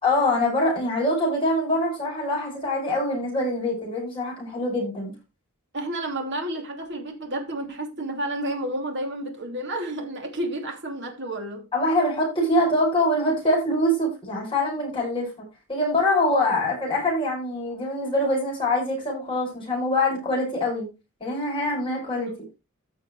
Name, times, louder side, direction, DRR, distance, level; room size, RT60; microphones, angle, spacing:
voice 1, 0.0-5.1 11.7-20.9 21.2-22.3, left 1 dB, 25° left, 6.1 m, -24 dB
voice 2, 5.7-11.7 16.3-16.6 22.3-22.4, right 1 dB, 55° right, 3.0 m, -31 dB
14.5 x 6.3 x 3.2 m
head